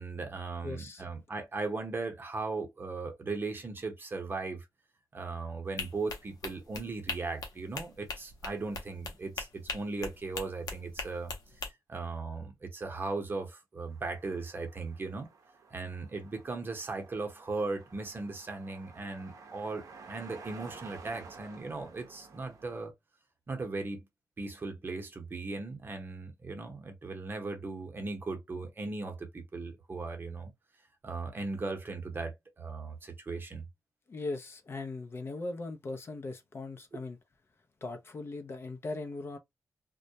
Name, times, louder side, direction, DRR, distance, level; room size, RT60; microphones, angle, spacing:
voice 1, 0.0-4.7 5.1-11.3 11.9-15.3 15.7-22.9 23.5-24.0 24.4-30.5 31.0-33.7 36.9-37.0, right 3 dB, 35° right, 0.8 m, -38 dB
voice 2, 0.6-1.0 34.1-37.2 37.8-39.4, left 3 dB, 40° left, 0.5 m, -39 dB
sound 1, 5.8-11.7, left 4 dB, 85° left, 0.6 m, -40 dB
sound 2, 13.9-22.9, right 4 dB, 65° right, 0.6 m, -53 dB
2.2 x 2.1 x 2.7 m
cardioid pair, 95°, 6 cm